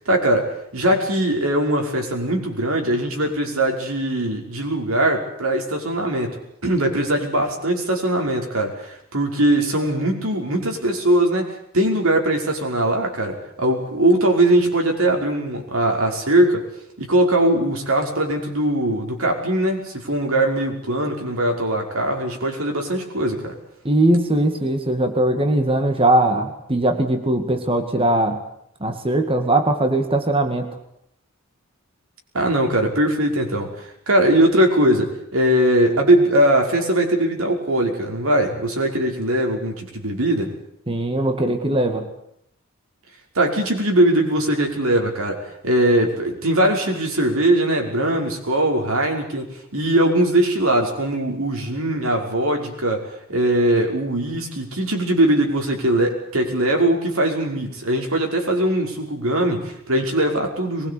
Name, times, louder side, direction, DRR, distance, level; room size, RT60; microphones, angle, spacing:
voice 1, 0.1-16.6 17.0-23.5 32.3-40.5 43.4-60.9, right 1 dB, 90° right, 2 dB, 5.6 m, -20 dB
voice 2, 23.8-28.4 28.8-30.7 40.9-42.1, right 1 dB, 25° right, 6 dB, 2.2 m, -20 dB
23.0 x 21.5 x 8.6 m, 0.73 s
head